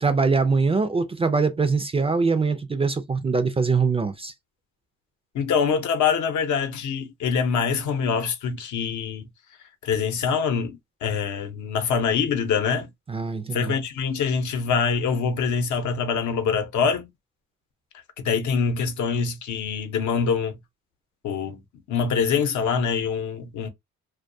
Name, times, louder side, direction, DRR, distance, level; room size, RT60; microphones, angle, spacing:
voice 1, 0.0-4.3 13.1-13.8, right 4 dB, 20° right, 0.3 m, -23 dB
voice 2, 5.3-9.3 9.8-12.9 13.5-17.1 18.2-20.6 21.2-21.6 21.9-23.7, left 6 dB, 75° left, 0.7 m, -24 dB
2.3 x 2.2 x 2.6 m
cardioid pair, 90°, 30 cm